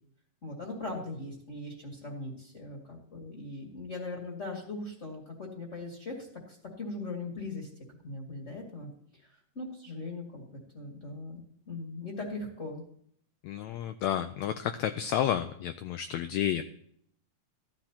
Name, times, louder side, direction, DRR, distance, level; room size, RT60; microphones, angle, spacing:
voice 1, 0.4-7.7 8.0-8.9 9.3-12.8, left 2 dB, 25° left, -1 dB, 2.1 m, -40 dB
voice 2, 13.4-16.6, left 10 dB, 85° left, 9 dB, 1.6 m, -31 dB
15.0 x 12.0 x 2.9 m, 0.66 s
omnidirectional pair, 3.7 m